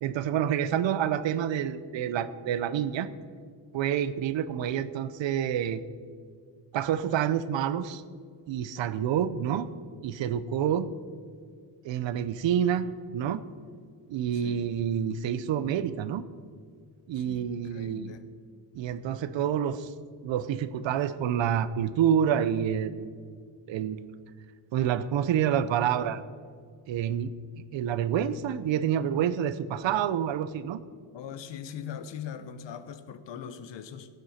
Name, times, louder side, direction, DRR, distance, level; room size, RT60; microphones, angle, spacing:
voice 1, 0.0-3.1 3.7-5.8 6.7-8.0 8.5-9.7 10.0-10.9 11.8-13.4 14.1-16.2 17.1-18.2 18.7-19.9 20.2-23.1 23.7-24.1 24.7-26.2 26.9-27.3 27.7-30.8, right 9 dB, 85° right, 14 dB, 0.7 m, -28 dB
voice 2, 14.3-14.7 17.1-18.2 31.1-34.1, left 8 dB, 75° left, 11 dB, 0.9 m, -41 dB
16.0 x 9.3 x 4.3 m, 2.1 s
wide cardioid pair, 145°, 44 cm